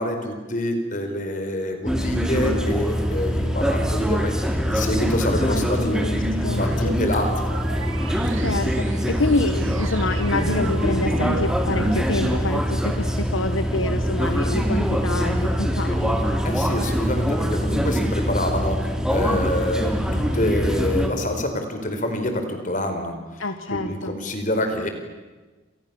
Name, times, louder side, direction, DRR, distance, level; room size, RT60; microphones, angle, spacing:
voice 1, 0.0-4.4 4.7-6.0 6.6-7.5 16.4-23.1 23.7-24.9, left 1 dB, 40° left, 6 dB, 4.7 m, -26 dB
sound 1, 1.8-21.1, equal, 5° right, 3.0 m, -24 dB
sound 2, 2.6-3.5 4.0-4.1 4.5-4.6 6.7-9.8 10.1-10.7 11.1-12.9 13.6-14.8, equal, 25° right, 3.6 m, -40 dB
voice 2, 5.4-6.8 8.0-16.2 23.4-24.2, left 2 dB, 80° left, 8 dB, 1.5 m, -27 dB
sound 3, 6.1-12.4, right 2 dB, 85° right, 2.0 m, -34 dB
29.5 x 28.0 x 7.2 m, 1.2 s
head